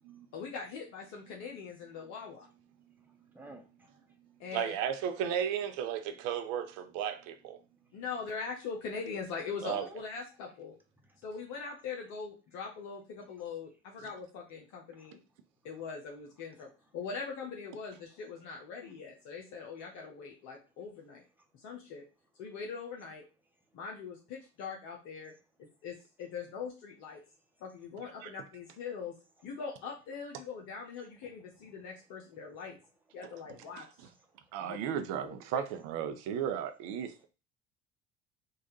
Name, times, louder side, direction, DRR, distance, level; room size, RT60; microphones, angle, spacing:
voice 1, 0.3-2.5 4.4-4.7 7.9-10.7 11.2-15.2 15.6-21.2 21.6-22.0 22.4-23.2 23.7-25.3 25.6-27.2 27.6-29.1 29.4-32.8 33.1-34.1 34.6-34.8 35.5-35.6, left 5 dB, 60° left, 1.0 m, -42 dB
voice 2, 3.3-4.0 9.5-10.0 11.0-11.1 14.9-15.1 16.6-16.7 21.4-21.5 31.2-31.3, right 2 dB, 5° right, 1.1 m, -50 dB
voice 3, 4.5-7.6 9.6-9.9 28.2-28.3 33.8-33.9 34.5-37.3, right 8 dB, 60° right, 0.7 m, -34 dB
4.0 x 2.5 x 3.9 m
figure-of-eight pair, 60°, 34 cm